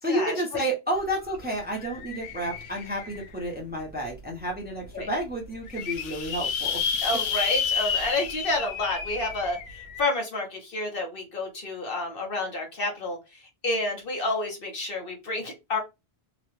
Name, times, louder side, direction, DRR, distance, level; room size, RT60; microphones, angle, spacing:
voice 1, 0.0-6.8, right 1 dB, 10° right, 0 dB, 0.8 m, -30 dB
sound 1, 1.0-1.1 1.3-3.4 4.0-4.1 4.5-4.6 4.8-4.9 5.4-10.0, left 6 dB, 75° left, 0.8 m, -31 dB
voice 2, 7.0-13.2 13.6-15.8, left 2 dB, 60° left, 1 dB, 1.1 m, -29 dB
2.9 x 2.3 x 3.2 m, 0.24 s
omnidirectional pair, 1.1 m